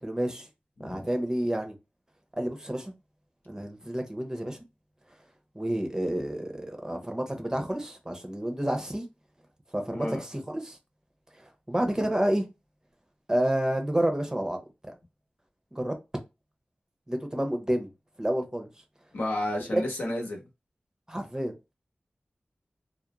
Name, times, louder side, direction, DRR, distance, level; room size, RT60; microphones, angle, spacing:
voice 1, 0.0-0.5 0.8-1.7 2.4-2.9 3.5-4.7 5.5-9.1 9.7-10.8 11.4-12.5 13.3-14.6 14.9-15.0 15.7-16.0 17.1-17.9 18.2-18.7 19.7-19.8 21.1-21.7, right 1 dB, 20° right, 0.6 m, -29 dB
voice 2, 19.1-20.4, left 1 dB, 80° left, 0.8 m, -31 dB
2.4 x 2.0 x 2.9 m
wide cardioid pair, 60°, 3 cm